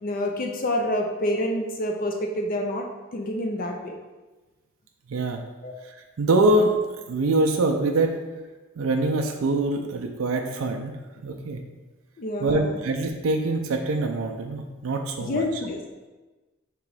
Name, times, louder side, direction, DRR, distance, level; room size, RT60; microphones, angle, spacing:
voice 1, 0.0-2.9 3.1-4.0 5.6-5.7 12.2-12.8 15.2-15.8, left 1 dB, 40° left, 3 dB, 0.4 m, -27 dB
voice 2, 5.1-5.4 6.2-6.7 7.1-8.2 8.8-11.0 11.2-11.6 12.4-15.6, right 2 dB, 85° right, 3 dB, 0.4 m, -24 dB
3.7 x 3.0 x 4.7 m, 1.2 s
head